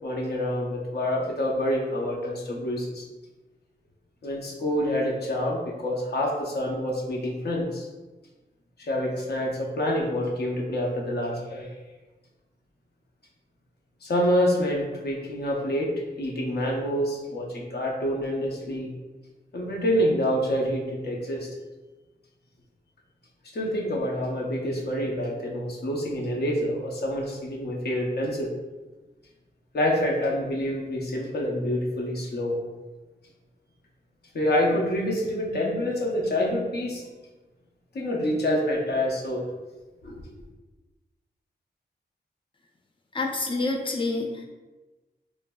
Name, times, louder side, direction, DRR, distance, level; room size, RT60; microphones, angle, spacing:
voice 1, 0.0-3.0 4.2-7.9 8.8-11.7 14.0-15.9 16.2-18.9 19.5-21.5 23.5-28.5 29.7-32.6 34.3-37.0 37.9-39.5 40.0-40.2, equal, 65° left, -2 dB, 0.7 m, -27 dB
voice 2, 43.1-44.5, left 3 dB, 30° left, 1 dB, 0.4 m, -27 dB
3.1 x 2.5 x 2.2 m, 1.2 s
wide cardioid pair, 130°, 18 cm